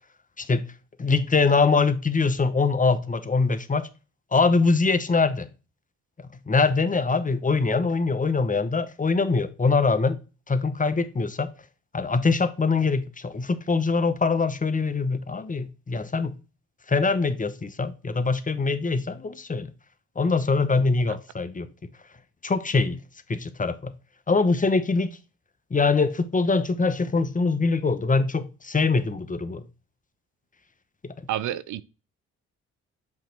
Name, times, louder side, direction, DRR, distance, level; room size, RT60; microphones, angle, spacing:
voice 1, 0.4-0.7 1.0-3.9 4.3-5.5 6.2-10.2 10.5-11.5 11.9-16.4 16.9-19.7 20.2-21.7 22.4-23.0 23.3-23.9 24.3-25.2 25.7-29.7 31.0-31.1, left 4 dB, 25° left, 0.8 m, -23 dB
voice 2, 31.3-31.8, right 12 dB, 75° right, 0.5 m, -29 dB
7.6 x 3.1 x 4.4 m
supercardioid pair, 55°, 31 cm